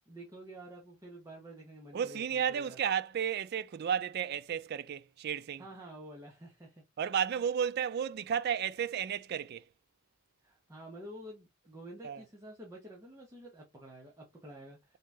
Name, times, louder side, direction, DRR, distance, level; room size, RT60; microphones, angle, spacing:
voice 1, 0.1-2.8 5.6-6.8 10.4-15.0, right 1 dB, 15° right, 0.8 m, -49 dB
voice 2, 1.9-5.6 7.0-9.7 12.0-12.2, right 8 dB, 50° right, 0.3 m, -33 dB
3.6 x 2.8 x 3.3 m
head